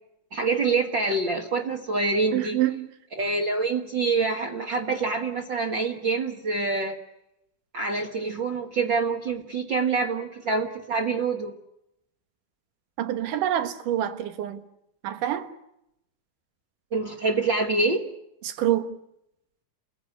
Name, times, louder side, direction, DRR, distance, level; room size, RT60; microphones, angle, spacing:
voice 1, 0.3-2.6 3.1-7.0 7.7-11.5 16.9-18.0, right 3 dB, 45° right, 1.8 m, -26 dB
voice 2, 2.3-2.9 13.0-14.6 15.0-15.5 18.4-19.0, right 12 dB, 90° right, 2.9 m, -26 dB
30.0 x 16.5 x 9.8 m
omnidirectional pair, 3.6 m